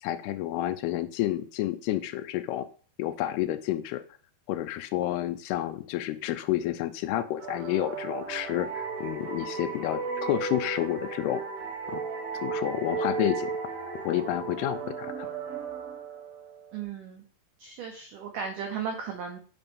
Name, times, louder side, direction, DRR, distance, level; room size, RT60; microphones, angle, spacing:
voice 1, 0.0-2.7 3.0-4.0 4.5-11.4 11.9-12.0 12.4-13.5 14.0-15.3, left 13 dB, 80° left, 11 dB, 2.4 m, -30 dB
sound 1, 7.4-16.8, right 5 dB, 65° right, 3.4 m, -35 dB
voice 2, 16.7-17.2 17.6-19.4, right 6 dB, 80° right, 3 dB, 1.9 m, -35 dB
6.8 x 5.9 x 3.5 m, 0.40 s
omnidirectional pair, 4.9 m